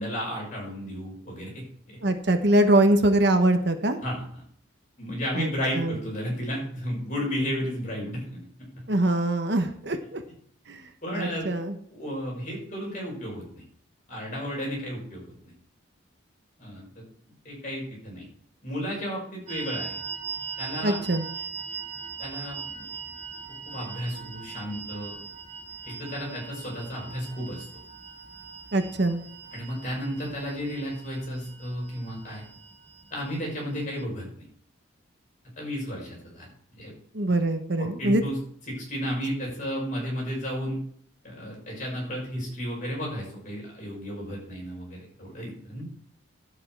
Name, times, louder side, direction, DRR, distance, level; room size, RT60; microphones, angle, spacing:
voice 1, 0.0-2.0 4.0-4.4 5.0-8.9 11.0-11.5 11.9-13.6 14.1-15.2 16.6-17.0 17.4-18.2 18.6-20.0 20.6-21.0 22.2-22.9 23.7-25.2 25.8-27.7 29.5-32.4 33.1-34.4 35.6-36.5 36.7-36.9 37.8-38.4 38.7-40.8 41.2-45.8, equal, 40° left, -3 dB, 6.0 m, -33 dB
voice 2, 2.0-4.0 5.3-6.0 8.9-10.2 10.7-10.8 11.1-11.7 20.8-21.3 28.7-29.2 37.1-38.2, right 1 dB, 55° right, 7 dB, 1.1 m, -23 dB
sound 1, 19.5-34.0, right 5 dB, 35° right, 1.1 m, -40 dB
11.5 x 8.6 x 4.7 m, 0.62 s
head